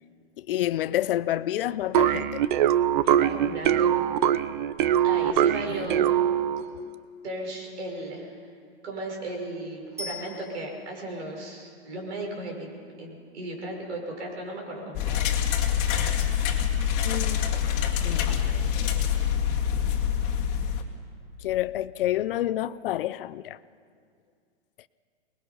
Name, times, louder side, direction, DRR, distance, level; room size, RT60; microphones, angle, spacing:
voice 1, 0.4-2.5 17.0-17.5 18.0-19.0 21.4-23.6, left 13 dB, 55° left, 0.6 m, -29 dB
sound 1, 1.9-6.7, right 10 dB, 45° right, 0.7 m, -23 dB
voice 2, 3.0-3.9 5.0-6.1 7.2-8.3 8.8-12.7 13.0-15.3, right 1 dB, 75° right, 5.9 m, -35 dB
Bicycle bell, 10.0-11.1 20.2-20.3, left 2 dB, 10° right, 2.4 m, -40 dB
sound 2, 14.9-20.8, left 8 dB, 35° left, 2.0 m, -25 dB
24.0 x 20.5 x 5.6 m
hypercardioid pair, 135°, 34 cm